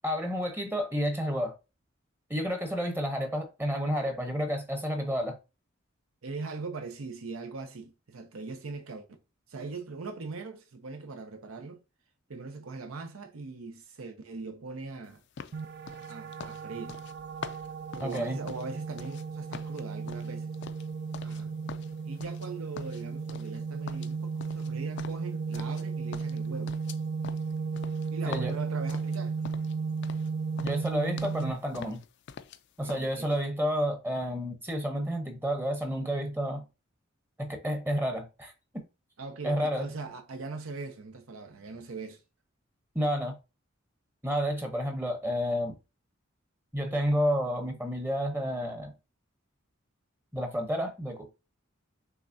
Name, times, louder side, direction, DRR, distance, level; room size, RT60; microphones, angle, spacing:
voice 1, 0.0-1.5 2.3-5.4 18.0-18.4 28.3-28.6 30.6-32.0 32.8-36.6 37.4-38.5 39.4-39.9 42.9-43.3 44.2-45.8 46.7-48.9 50.3-51.3, equal, 10° right, 0.7 m, -30 dB
voice 2, 6.2-9.1 9.5-11.8 12.3-15.2 16.0-17.1 17.9-20.5 21.2-21.5 22.1-26.8 28.1-29.4 32.8-33.3 39.2-42.2, right 4 dB, 85° right, 0.7 m, -40 dB
sound 1, 15.4-19.3 19.5-21.4 21.7-22.5 22.8-23.6 23.9-25.9 26.1-29.8 30.0-30.3 30.6-31.5 31.7-32.6 32.9-33.1, left 6 dB, 60° left, 0.4 m, -44 dB
sound 2, 15.5-31.5, right 5 dB, 50° right, 0.4 m, -35 dB
5.8 x 3.3 x 2.6 m
head